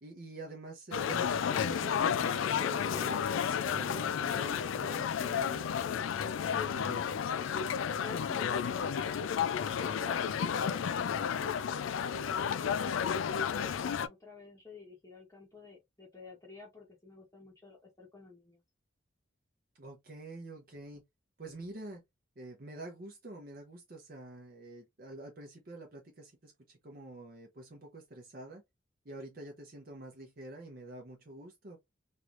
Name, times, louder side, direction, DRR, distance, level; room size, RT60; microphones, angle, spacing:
voice 1, 0.0-5.8 6.6-7.0 10.6-10.8 19.8-21.0 21.4-22.0 22.4-28.6 29.0-31.8, right 2 dB, 50° right, 0.7 m, -47 dB
sound 1, 0.9-14.1, left 7 dB, 85° left, 0.4 m, -32 dB
voice 2, 3.9-5.1 6.5-9.3 12.2-18.6, left 3 dB, 15° left, 1.0 m, -51 dB
3.2 x 3.0 x 2.4 m
head